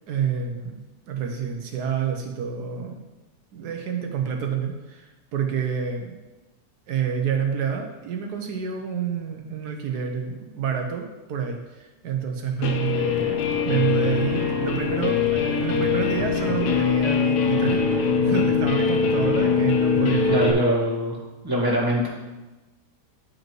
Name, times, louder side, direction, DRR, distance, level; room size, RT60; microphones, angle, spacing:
voice 1, 0.1-0.8 1.1-3.0 3.5-6.2 6.9-20.6, right 7 dB, 75° right, 3 dB, 1.3 m, -28 dB
Guitar, 12.6-20.5, left 6 dB, 75° left, 1.3 m, -22 dB
voice 2, 20.3-21.2 21.4-22.1, equal, 15° right, -4 dB, 1.4 m, -23 dB
10.0 x 5.1 x 3.1 m, 1.1 s
omnidirectional pair, 1.7 m